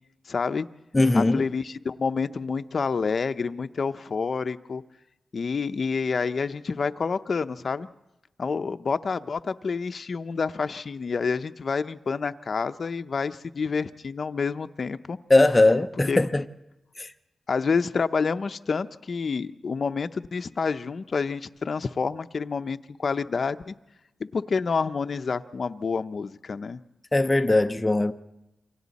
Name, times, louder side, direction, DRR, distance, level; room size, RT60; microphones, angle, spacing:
voice 1, 0.3-0.7 1.1-4.8 5.3-7.9 8.4-15.2 16.1-16.2 17.5-23.7 24.2-26.8, left 5 dB, 55° left, 0.6 m, -28 dB
voice 2, 0.9-1.5 15.3-16.4 17.0-17.1 27.1-28.1, left 2 dB, 15° left, 0.6 m, -20 dB
28.0 x 24.5 x 4.1 m
wide cardioid pair, 125°, 0 cm